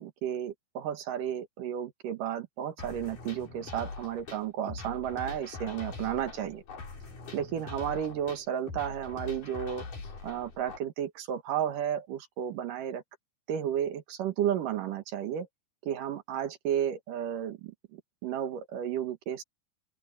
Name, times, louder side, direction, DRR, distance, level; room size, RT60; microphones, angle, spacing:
voice 1, 0.0-6.6 7.3-9.8 10.2-13.0 13.5-15.5 15.9-19.4, right 10 dB, 70° right, 2.9 m, -33 dB
sound 1, 2.8-10.8, left 4 dB, 65° left, 6.5 m, -43 dB
open air
omnidirectional pair, 4.1 m